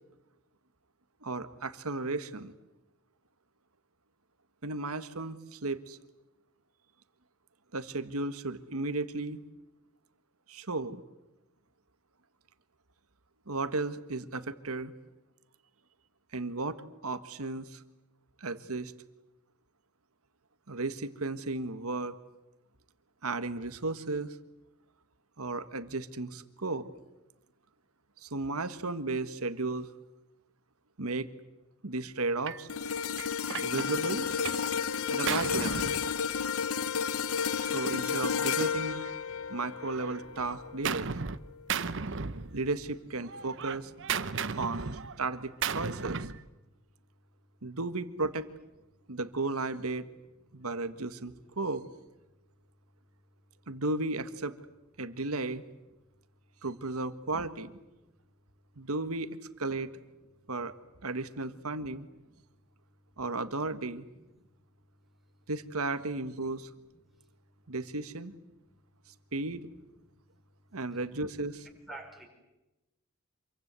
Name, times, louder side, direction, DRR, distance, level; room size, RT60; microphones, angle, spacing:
voice 1, 1.2-2.5 4.6-6.0 7.7-9.4 10.5-11.0 13.5-14.9 16.3-17.8 18.4-18.9 20.7-22.2 23.2-24.4 25.4-26.9 28.2-29.9 31.0-31.3 31.8-32.7 33.6-34.3 35.1-35.9 37.6-39.0 39.5-41.1 42.5-43.9 44.5-44.9 45.2-46.3 47.6-48.5 49.1-50.0 50.5-51.8 53.7-54.6 55.0-55.6 56.6-57.8 58.8-59.9 60.5-60.7 61.0-62.1 63.2-64.0 65.5-66.7 67.7-68.3 69.3-69.6 70.7-71.7, right 3 dB, 80° right, 11 dB, 1.6 m, -34 dB
Gunshot gunfire, 32.5-32.7 33.2-34.7 35.0-36.7 37.6-39.5 39.8-41.4 41.7-42.9 43.2-46.4, right 6 dB, 55° right, 0.9 m, -36 dB
sound 1, 32.7-41.0 41.5-41.7, left 7 dB, 75° left, 0.8 m, -32 dB
voice 2, 64.1-64.5 68.2-68.3 68.5-68.7 71.8-72.3, right 2 dB, ahead, 0 dB, 5.5 m, -51 dB
27.0 x 23.5 x 8.3 m, 1.0 s
head